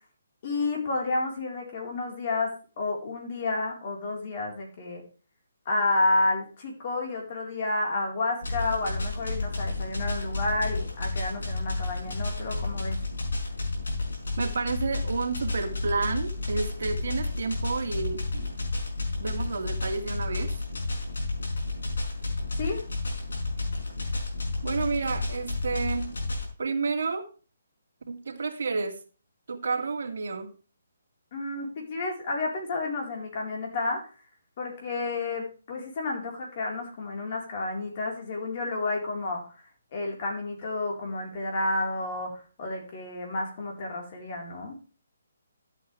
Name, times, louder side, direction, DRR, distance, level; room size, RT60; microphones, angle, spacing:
voice 1, 0.4-2.5 2.8-5.0 5.6-13.0 22.6-22.8 31.3-34.0 34.6-39.4 39.9-44.8, left 2 dB, 40° left, 0 dB, 4.3 m, -30 dB
sound 1, 8.4-26.5, left 2 dB, 85° left, 5.3 m, -31 dB
voice 2, 14.4-18.5 19.2-20.6 24.6-26.1 26.6-27.3 28.1-29.0 29.5-30.5, right 4 dB, 65° right, 3 dB, 2.3 m, -30 dB
12.5 x 8.3 x 3.5 m, 0.36 s
hypercardioid pair, 160°, 0 cm